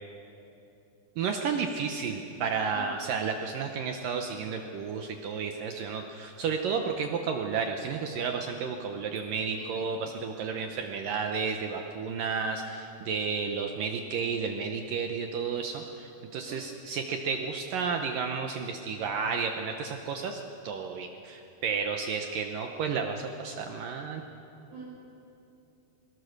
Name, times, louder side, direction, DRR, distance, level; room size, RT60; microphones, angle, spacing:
voice 1, 1.2-24.2, right 5 dB, 75° right, 4 dB, 2.1 m, -32 dB
voice 2, 9.4-10.1 16.5-16.6 24.7-24.8, right 3 dB, 55° right, -5 dB, 8.0 m, -45 dB
21.5 x 19.5 x 6.6 m, 2.8 s
omnidirectional pair, 5.0 m